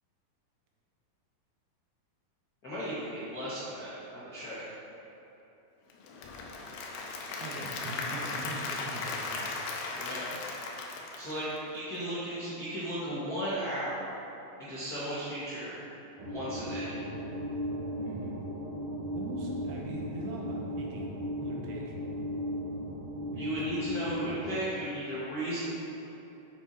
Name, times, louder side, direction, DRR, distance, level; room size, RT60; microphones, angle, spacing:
voice 1, 2.6-4.7 10.0-10.3 11.2-14.1 14.6-15.8 16.3-17.0 23.3-25.7, right 1 dB, 60° left, -11 dB, 0.9 m, -35 dB
Applause / Crowd, 5.9-12.0, left 3 dB, 80° left, 2.7 m, -37 dB
voice 2, 7.4-9.5 18.0-18.4 19.2-22.0 23.3-23.5, right 2 dB, 85° right, -2 dB, 3.0 m, -41 dB
sound 1, 16.2-24.5, equal, 65° right, 1.8 m, -36 dB
8.2 x 5.5 x 4.3 m, 3.0 s
omnidirectional pair, 4.5 m